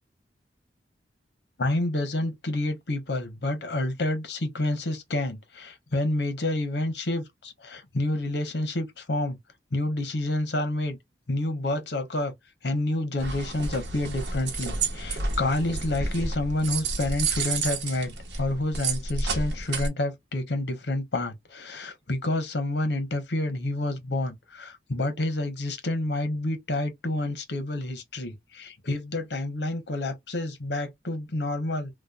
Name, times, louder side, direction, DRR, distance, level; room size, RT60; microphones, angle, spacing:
voice 1, 1.6-9.4 9.7-11.0 11.3-12.3 12.6-18.1 18.4-31.9, left 1 dB, 70° left, 1.0 m, -29 dB
sound 1, 13.2-19.9, right 3 dB, 80° right, 1.0 m, -30 dB
3.0 x 2.3 x 2.3 m
head